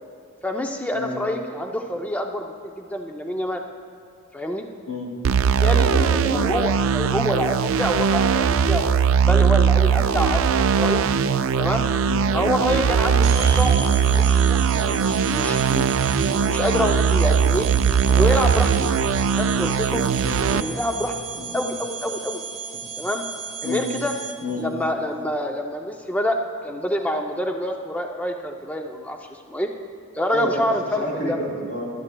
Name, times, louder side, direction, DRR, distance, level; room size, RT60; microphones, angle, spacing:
voice 1, 0.4-3.6 4.3-4.7 5.6-5.9 6.3-11.0 11.6-11.8 12.3-13.8 14.1-15.9 16.2-17.7 18.1-18.9 19.3-20.0 20.5-21.1 21.5-22.4 23.0-23.2 23.6-24.1 24.6-26.4 26.6-29.7 30.1-31.4, left 1 dB, 5° left, 3 dB, 0.4 m, -26 dB
sound 1, 5.2-20.6, right 6 dB, 65° right, 0.3 m, -20 dB
voice 2, 5.8-6.5 7.1-7.3 9.9-10.0 12.0-12.3 13.1-13.3 20.2-20.5 21.3-21.5 23.6-23.9 24.4-24.7 30.3-30.6 31.0-31.9, left 1 dB, 80° left, -2 dB, 2.7 m, -30 dB
sound 2, 13.2-24.6, right 5 dB, 30° right, 1.9 m, -34 dB
16.0 x 12.0 x 2.2 m, 2.5 s
head